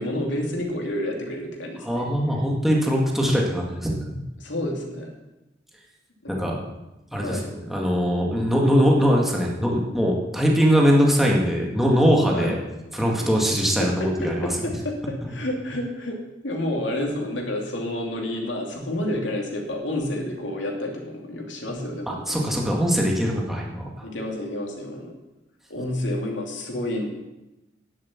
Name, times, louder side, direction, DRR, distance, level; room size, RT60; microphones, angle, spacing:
voice 1, 0.0-2.0 4.4-5.1 6.2-6.6 7.2-7.5 12.3-12.6 13.8-22.5 24.0-25.1 25.7-27.1, left 1 dB, 85° left, 0 dB, 2.6 m, -29 dB
voice 2, 1.8-4.2 6.3-6.6 7.1-12.6 12.9-14.5 22.1-23.9, equal, ahead, -2 dB, 1.7 m, -21 dB
11.0 x 7.6 x 7.2 m, 0.99 s
head